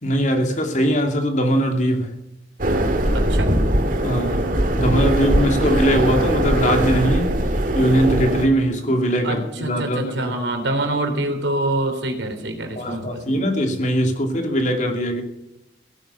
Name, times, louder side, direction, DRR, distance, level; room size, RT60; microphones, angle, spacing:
voice 1, 0.0-2.2 4.0-4.5 4.7-7.3 7.7-10.4 12.8-15.2, equal, 45° left, 2.6 m, -21 dB
sound 1, 2.6-8.5, right 1 dB, 50° right, 1.9 m, -20 dB
voice 2, 3.1-3.5 5.6-5.7 9.2-13.4, right 1 dB, 90° right, 3.5 m, -26 dB
17.0 x 9.1 x 8.2 m
head